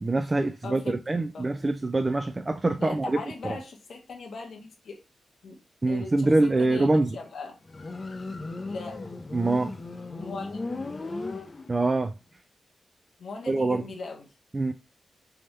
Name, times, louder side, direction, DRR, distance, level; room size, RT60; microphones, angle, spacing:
voice 1, 0.0-3.2 3.4-3.6 5.8-7.2 9.3-9.8 11.7-12.1 13.5-13.8 14.5-14.7, right 2 dB, 30° right, 0.3 m, -24 dB
voice 2, 2.8-5.0 5.4-5.6 5.9-7.6 8.7-9.2 10.2-10.6 13.2-14.3, left 4 dB, 70° left, 1.1 m, -39 dB
Motorcycle, 7.7-12.0, left 3 dB, 40° left, 0.6 m, -36 dB
3.4 x 3.0 x 3.2 m
cardioid pair, 75°, 0 cm